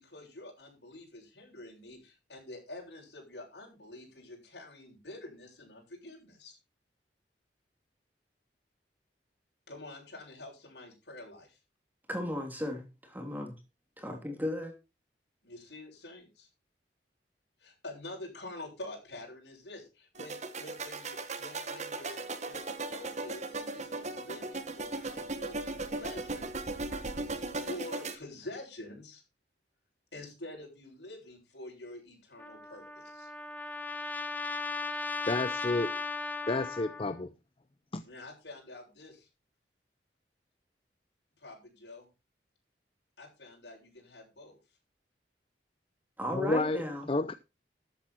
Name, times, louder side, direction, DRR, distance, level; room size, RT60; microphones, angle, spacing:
voice 1, 0.0-6.6 9.7-11.6 15.4-16.5 17.6-26.5 27.7-29.2 30.1-33.3 38.0-39.3 41.4-42.1 43.2-44.6, left 2 dB, 75° left, 7.6 m, -47 dB
voice 2, 12.1-13.5 14.0-14.7 46.2-47.1, left 1 dB, 10° right, 2.9 m, -35 dB
sound 1, 20.2-28.2, right 3 dB, 40° right, 1.4 m, -37 dB
Trumpet, 32.4-37.2, left 4 dB, 10° left, 0.9 m, -37 dB
voice 3, 35.3-36.0 36.5-37.3 37.9-38.0 46.3-46.8 47.1-47.3, left 2 dB, 30° left, 0.6 m, -30 dB
13.5 x 8.7 x 4.5 m
head